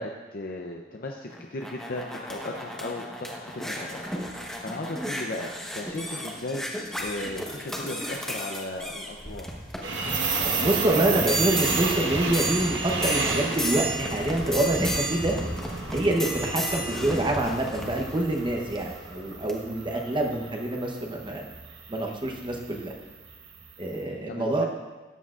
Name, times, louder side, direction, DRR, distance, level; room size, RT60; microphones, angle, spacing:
voice 1, 0.0-9.5 24.0-24.7, left 2 dB, 50° left, 1 dB, 0.6 m, -36 dB
sound 1, 1.3-18.9 19.5-19.6, right 1 dB, 5° left, 1.1 m, -33 dB
sound 2, 9.8-23.9, right 4 dB, 70° right, 1.3 m, -33 dB
voice 2, 10.4-15.3 15.9-21.4 21.9-22.9 23.8-24.7, right 1 dB, 25° right, 1 dB, 1.0 m, -26 dB
13.5 x 9.8 x 2.5 m, 1.2 s
head